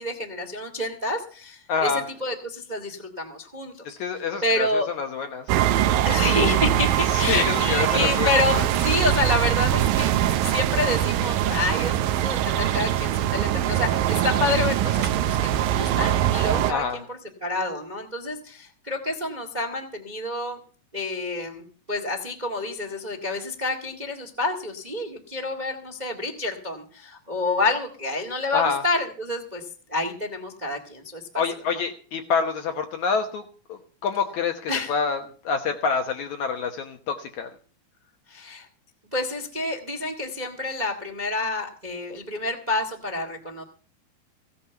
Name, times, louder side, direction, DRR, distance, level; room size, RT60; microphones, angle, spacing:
voice 1, 0.0-1.9 2.2-4.0 4.4-4.9 6.0-20.6 20.9-29.6 29.9-31.4 34.7-34.9 38.3-38.7 39.1-43.6, left 2 dB, 20° right, 3 dB, 1.2 m, -28 dB
voice 2, 1.7-2.0 4.0-5.5 7.1-8.3 16.7-17.0 28.5-28.8 31.4-33.4 33.7-37.5, left 5 dB, 65° left, 6 dB, 2.1 m, -27 dB
sound 1, 5.5-16.7, right 12 dB, 75° right, 2.4 m, -22 dB
16.0 x 8.5 x 6.9 m, 0.41 s
omnidirectional pair, 4.2 m